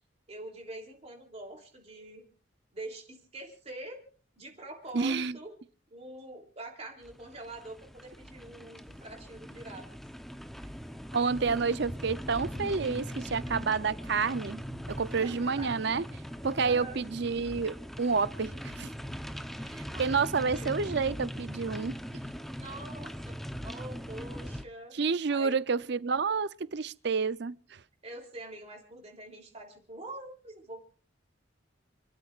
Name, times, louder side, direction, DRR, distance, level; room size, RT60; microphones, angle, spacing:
voice 1, 0.3-2.3 2.7-4.0 4.4-5.5 5.9-9.9 15.2-15.7 16.6-17.0 19.9-20.7 22.6-25.0 25.3-25.6 28.0-30.8, right 2 dB, 35° right, 3.2 m, -45 dB
voice 2, 4.9-5.4 11.1-14.6 14.9-16.0 16.4-18.9 19.7-22.0 24.9-27.6, right 5 dB, 60° right, 0.6 m, -29 dB
sound 1, 7.0-24.6, equal, ahead, 0.8 m, -40 dB
29.0 x 13.0 x 2.5 m
head